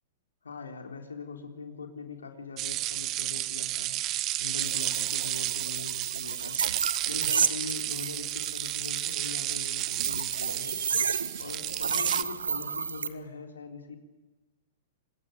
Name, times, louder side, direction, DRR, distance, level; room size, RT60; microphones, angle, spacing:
voice 1, 0.4-3.9 4.4-6.6 7.1-10.8 11.4-14.0, left 5 dB, 90° left, 4 dB, 3.6 m, -42 dB
sound 1, 2.6-12.2, right 15 dB, 35° right, 1.0 m, -32 dB
sound 2, 4.6-13.1, right 6 dB, 85° right, 1.6 m, -32 dB
25.5 x 21.0 x 9.4 m, 1.2 s
hypercardioid pair, 120°, 0 cm